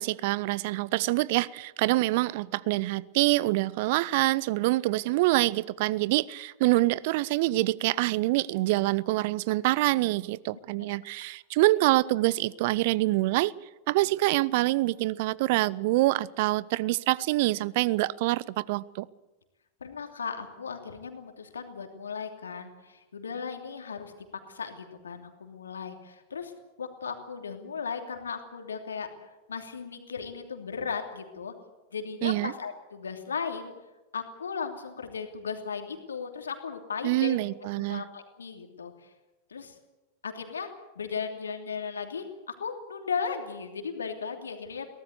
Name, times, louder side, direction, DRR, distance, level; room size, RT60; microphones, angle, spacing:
voice 1, 0.0-13.5 13.9-19.1 32.2-32.5 37.0-38.0, right 19 dB, 50° right, 24 dB, 0.6 m, -26 dB
voice 2, 19.8-24.1 24.5-26.5 26.8-31.5 31.9-33.7 34.1-37.4 37.8-39.1 39.5-39.8 40.2-44.9, left 6 dB, 70° left, 5 dB, 2.9 m, -36 dB
23.5 x 17.5 x 8.1 m, 1.1 s
figure-of-eight pair, 90°, 0 cm